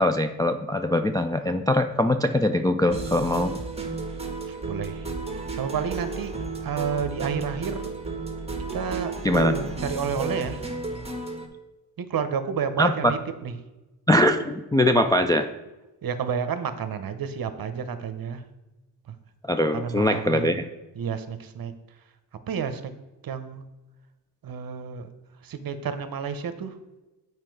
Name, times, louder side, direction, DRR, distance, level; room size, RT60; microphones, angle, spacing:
voice 1, 0.0-3.5 9.2-9.5 12.8-12.9 14.1-15.5 19.5-20.7, left 1 dB, 10° left, 6 dB, 0.3 m, -22 dB
sound 1, 2.8-11.5, right 3 dB, 15° right, 1.5 m, -33 dB
voice 2, 4.5-5.1 5.3-6.3 6.6-7.9 8.6-10.6 12.0-13.5 16.0-18.4 19.1-19.2 19.7-20.6 20.9-21.7 22.5-22.9 23.2-23.6 24.4-25.1 25.4-26.8, right 6 dB, 50° right, 10 dB, 0.9 m, -30 dB
7.5 x 4.8 x 4.8 m, 1.1 s
cardioid pair, 70°, 46 cm